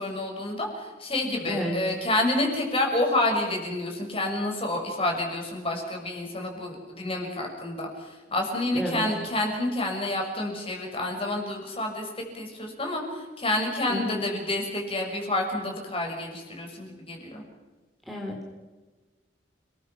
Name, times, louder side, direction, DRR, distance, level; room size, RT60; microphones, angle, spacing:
voice 1, 0.0-17.4, left 1 dB, 30° left, 1 dB, 6.3 m, -29 dB
voice 2, 8.7-9.0 13.9-14.3 18.1-18.5, left 1 dB, ahead, -2 dB, 3.8 m, -31 dB
29.5 x 21.0 x 6.1 m, 1.3 s
head